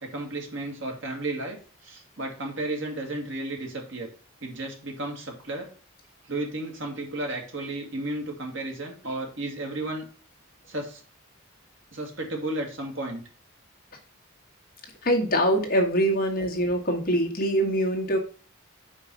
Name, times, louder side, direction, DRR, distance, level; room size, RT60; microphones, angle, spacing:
voice 1, 0.0-4.1 4.4-5.7 6.2-10.0 10.7-11.0 11.9-13.2, right 2 dB, 65° right, 1 dB, 2.1 m, -33 dB
voice 2, 15.0-18.2, equal, 45° left, 0 dB, 1.7 m, -24 dB
5.3 x 4.8 x 6.0 m, 0.39 s
head